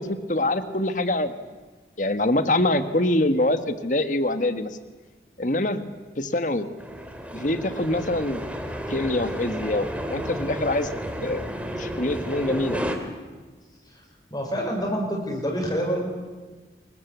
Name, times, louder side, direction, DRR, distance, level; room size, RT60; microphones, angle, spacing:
voice 1, 0.0-1.3 2.0-4.7 5.4-5.9 6.2-6.7 7.3-8.4 8.9-10.9 11.2-11.5 11.8-12.8, left 1 dB, 45° left, 10 dB, 1.6 m, -24 dB
sound 1, 6.8-13.0, equal, 5° right, 2.4 m, -32 dB
voice 2, 14.3-16.1, equal, 20° left, 0 dB, 5.4 m, -27 dB
26.0 x 21.5 x 8.2 m, 1.3 s
head